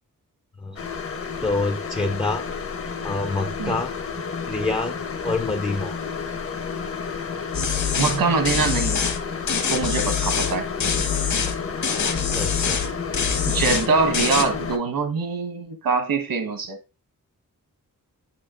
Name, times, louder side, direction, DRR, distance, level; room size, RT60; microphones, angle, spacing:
sound 1, 0.8-14.8, left 5 dB, 40° left, 0.7 m, -31 dB
voice 1, 1.4-2.4 3.0-3.9 4.5-5.0 5.2-6.0 12.3-12.8, left 3 dB, 15° left, 0.4 m, -26 dB
sound 2, 7.5-8.2 8.4-9.2 9.5-10.5 10.8-11.5 11.8-12.9 13.1-13.9 14.1-14.4, left 6 dB, 55° left, 1.2 m, -24 dB
voice 2, 8.0-9.0 9.7-10.7 13.5-16.8, right 4 dB, 80° right, 1.3 m, -23 dB
7.4 x 6.6 x 2.4 m
wide cardioid pair, 150°, 34 cm